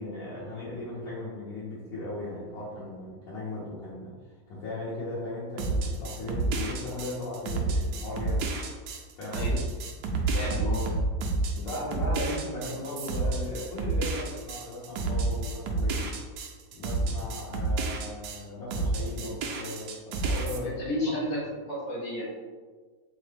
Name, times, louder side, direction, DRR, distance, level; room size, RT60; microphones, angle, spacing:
voice 1, 0.0-8.6 9.1-9.6 10.5-10.8 11.2-11.3 11.6-16.1 16.8-21.1, left 2 dB, 90° left, -9 dB, 1.7 m, -37 dB
sound 1, 5.6-18.4 18.7-20.6, right 3 dB, 70° right, 1.1 m, -30 dB
voice 2, 10.3-10.8 20.6-21.4 21.7-22.2, left 1 dB, 60° left, -6 dB, 1.5 m, -32 dB
3.8 x 3.3 x 3.3 m, 1.5 s
omnidirectional pair, 1.9 m